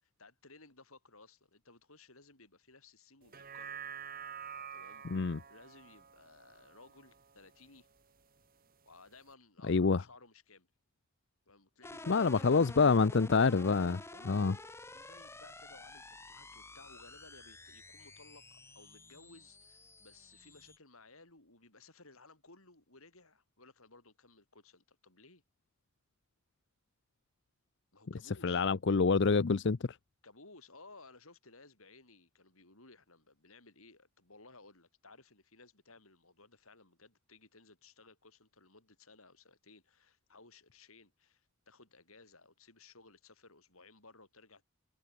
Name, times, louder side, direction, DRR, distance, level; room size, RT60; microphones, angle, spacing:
voice 1, 0.0-3.9 4.7-5.1 5.5-7.9 8.9-10.7 11.5-12.6 14.1-14.6 14.9-25.4 27.9-28.7 30.2-44.7, left 3 dB, 75° left, 7.8 m, -59 dB
sound 1, 3.2-7.8 8.2-8.3, right 8 dB, 40° right, 1.6 m, -48 dB
voice 2, 5.0-5.4 9.7-10.0 12.1-14.0 14.3-14.5 28.4-29.8, left 4 dB, 55° left, 0.6 m, -27 dB
sound 2, 11.8-20.8, left 2 dB, 10° left, 1.2 m, -50 dB
head